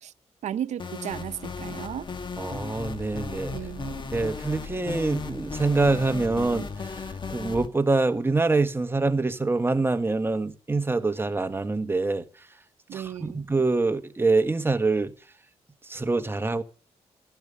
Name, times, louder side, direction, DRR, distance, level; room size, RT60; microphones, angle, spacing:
voice 1, 0.4-2.1 3.5-4.1 12.9-13.5, right 10 dB, 80° right, 0.7 m, -34 dB
sound 1, 0.8-7.7, left 4 dB, 40° left, 1.6 m, -36 dB
voice 2, 2.4-3.5 4.1-6.7 7.3-12.2 12.9-15.1 15.9-16.6, right 3 dB, 20° right, 1.4 m, -25 dB
13.5 x 10.5 x 7.4 m
cardioid pair, 95°, 12 cm